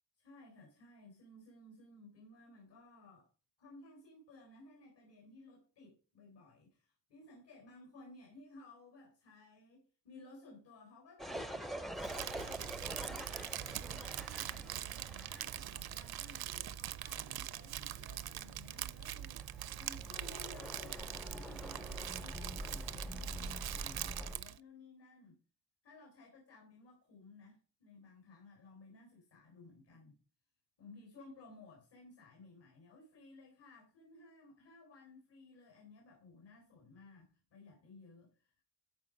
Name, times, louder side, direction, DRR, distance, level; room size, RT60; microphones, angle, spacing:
voice 1, 0.2-3.3 3.6-25.4 25.8-30.2 30.8-38.6, left 2 dB, 75° left, 4.1 m, -58 dB
sound 1, 11.2-24.4, right 1 dB, ahead, 0.4 m, -46 dB
Crumpling crinkling, 12.0-24.6, right 12 dB, 60° right, 0.5 m, -43 dB
13.0 x 4.7 x 5.0 m
wide cardioid pair, 175°, 43 cm